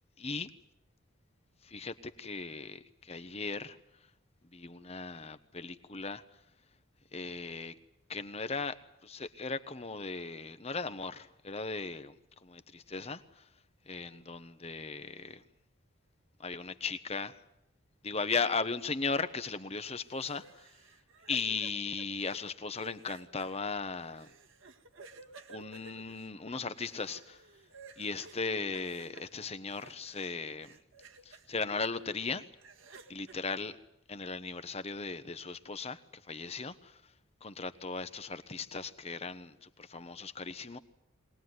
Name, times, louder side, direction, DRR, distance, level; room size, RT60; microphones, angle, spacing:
voice 1, 0.2-0.5 1.6-3.8 4.5-6.2 7.1-7.7 8.1-12.1 12.4-13.4 13.9-15.4 16.4-17.4 18.0-20.7 21.3-24.3 25.5-27.4 28.0-30.8 31.2-32.5 33.1-33.8 34.1-36.0 36.3-37.0 37.4-40.8, left 4 dB, 30° left, 11 dB, 1.1 m, -37 dB
sound 1, 19.8-30.3 30.6-31.5 32.0-33.3, right 3 dB, 70° right, 1.8 m, -55 dB
22.5 x 19.5 x 9.6 m, 0.80 s
head